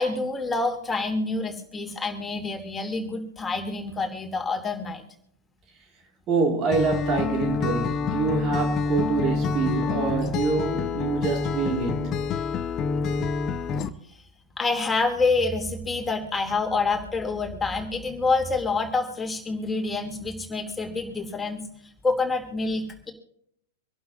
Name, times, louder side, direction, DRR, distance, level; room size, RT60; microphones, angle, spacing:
voice 1, 0.0-5.0 14.6-21.6 22.0-23.1, left 3 dB, 15° left, 3.0 m, -27 dB
voice 2, 6.3-12.2 13.2-13.3, right 5 dB, 35° right, 2.3 m, -26 dB
Acoustic guitar, 6.7-13.9, left 5 dB, 30° left, 1.0 m, -27 dB
26.0 x 11.5 x 2.7 m
figure-of-eight pair, 100°, 0 cm